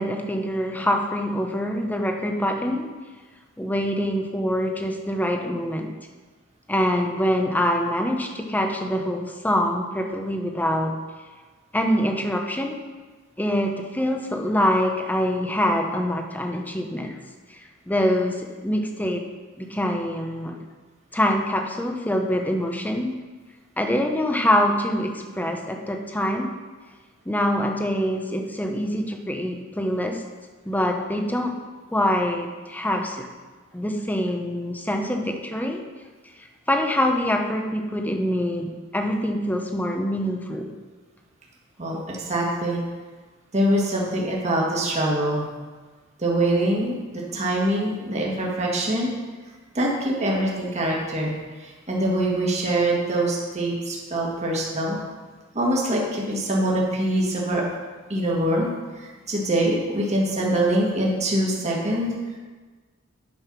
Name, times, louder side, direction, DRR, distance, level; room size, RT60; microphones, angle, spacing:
voice 1, 0.0-2.9 3.6-5.9 6.7-11.0 11.7-12.8 13.4-17.2 17.5-17.6 17.9-19.2 19.6-20.6 21.1-23.1 23.8-26.5 27.3-30.2 30.7-31.6 31.9-33.3 33.7-35.8 36.7-40.7, equal, 10° left, 3 dB, 0.8 m, -25 dB
voice 2, 41.8-42.8 43.5-45.4 46.2-49.1 49.8-51.3 51.6-55.0 55.6-57.6 58.1-62.1, right 1 dB, 35° right, -3 dB, 1.6 m, -24 dB
8.9 x 5.6 x 6.0 m, 1.4 s
head